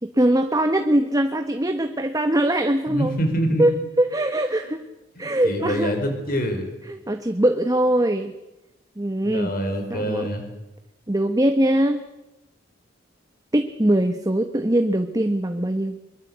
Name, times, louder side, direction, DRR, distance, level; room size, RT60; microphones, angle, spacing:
voice 1, 0.0-3.1 3.6-3.7 4.0-4.8 5.2-5.9 6.9-8.3 9.0-9.5 9.9-10.3 11.1-12.0 13.5-16.0, right 1 dB, 20° right, 7 dB, 1.0 m, -21 dB
voice 2, 2.9-3.6 5.2-6.7 9.2-10.5, equal, 50° left, 6 dB, 5.1 m, -25 dB
23.0 x 23.0 x 8.0 m, 0.96 s
head